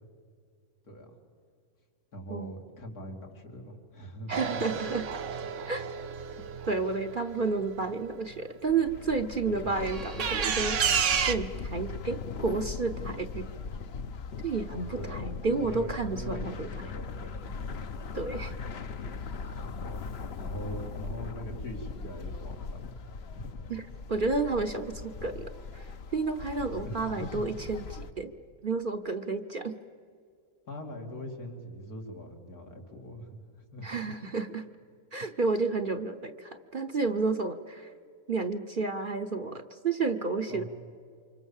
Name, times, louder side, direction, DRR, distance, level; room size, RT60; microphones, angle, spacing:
voice 1, 0.8-1.2 2.1-4.6 6.3-6.4 9.6-9.9 14.6-17.6 18.3-18.6 19.6-20.0 20.4-23.6 26.9-27.4 30.6-33.9 40.5-40.7, equal, 85° left, 2 dB, 3.4 m, -42 dB
voice 2, 4.3-5.2 5.7-5.9 6.7-10.8 11.3-13.5 14.4-16.7 18.1-18.5 23.7-23.8 24.1-28.3 28.6-29.8 33.8-34.6 35.1-37.9 38.3-40.6, right 4 dB, 40° right, 7 dB, 0.9 m, -31 dB
sound 1, 4.3-8.0 9.9-11.4, right 7 dB, 60° right, 1.2 m, -31 dB
sound 2, 8.6-28.1, left 4 dB, 50° left, 1.0 m, -39 dB
29.0 x 25.5 x 7.3 m, 2.2 s
omnidirectional pair, 1.5 m